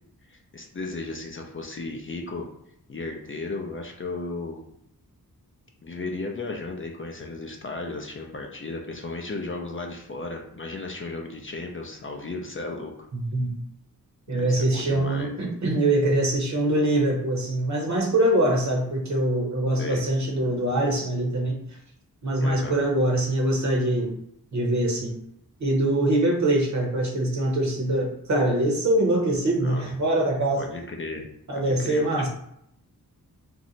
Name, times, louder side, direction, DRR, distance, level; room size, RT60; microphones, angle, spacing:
voice 1, 0.3-2.5 2.9-4.6 5.8-12.9 14.3-15.3 19.8-20.0 22.4-22.7 29.6-29.8 30.6-31.3 31.5-32.3, left 3 dB, 35° left, 2 dB, 0.4 m, -35 dB
voice 2, 13.1-13.6 14.3-21.6 22.2-24.1 24.5-25.2 25.6-30.7 31.5-32.3, right 1 dB, 50° right, -1 dB, 0.8 m, -23 dB
2.7 x 2.1 x 3.9 m, 0.73 s
wide cardioid pair, 85°, 35 cm